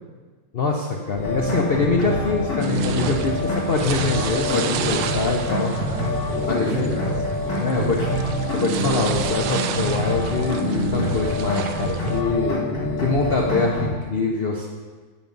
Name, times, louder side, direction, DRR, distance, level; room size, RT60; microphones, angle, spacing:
voice 1, 0.5-5.7 6.4-6.9 7.6-8.2 8.5-12.6 13.0-14.7, left 3 dB, 80° left, 1 dB, 0.5 m, -24 dB
sound 1, 1.2-13.9, left 1 dB, 50° left, 3.1 m, -26 dB
sound 2, 2.6-12.2, right 8 dB, 80° right, 1.3 m, -33 dB
voice 2, 2.9-3.4 5.5-8.0, right 1 dB, 55° right, -8 dB, 4.1 m, -31 dB
8.8 x 7.2 x 5.4 m, 1.4 s
omnidirectional pair, 2.1 m